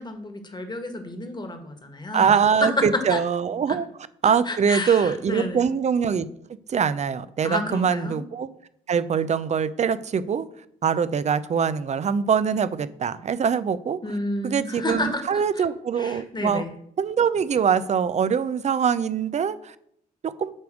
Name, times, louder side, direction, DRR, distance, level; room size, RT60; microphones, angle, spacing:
voice 1, 0.0-2.7 3.1-3.2 4.4-5.6 7.4-8.2 14.0-15.6 16.0-16.7, left 2 dB, 25° left, 1.7 m, -31 dB
voice 2, 2.1-3.9 4.2-6.3 6.7-8.5 8.9-10.5 10.8-14.0 14.4-16.6 17.0-19.7 20.2-20.5, right 7 dB, 40° right, 0.6 m, -23 dB
9.6 x 3.4 x 6.3 m
hypercardioid pair, 55°, 17 cm